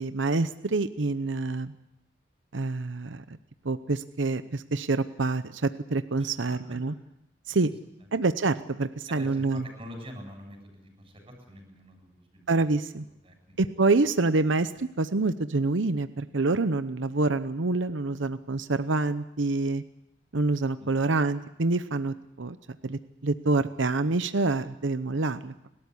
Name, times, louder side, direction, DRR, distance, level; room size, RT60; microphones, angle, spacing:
voice 1, 0.0-1.7 2.5-3.2 3.6-6.9 7.5-7.7 8.1-9.6 12.5-13.0 13.6-19.8 20.3-22.6 22.8-25.5, right 3 dB, 85° right, 11 dB, 0.8 m, -27 dB
voice 2, 9.1-12.7 13.2-13.3 20.8-20.9, equal, 30° right, 3 dB, 7.9 m, -45 dB
30.0 x 13.0 x 9.7 m, 0.85 s
head